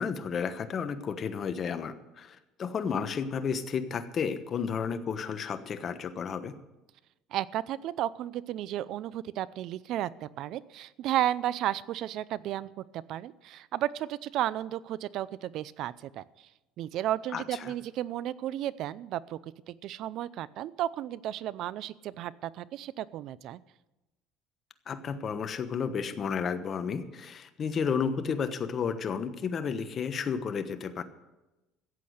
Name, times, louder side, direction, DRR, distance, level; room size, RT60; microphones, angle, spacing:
voice 1, 0.0-6.5 17.3-17.7 24.9-31.0, left 6 dB, 40° left, 10 dB, 1.1 m, -32 dB
voice 2, 7.3-16.2 16.8-23.6, right 12 dB, 60° right, 19 dB, 0.5 m, -33 dB
14.0 x 8.4 x 7.9 m, 1.0 s
cardioid pair, 120°, 0 cm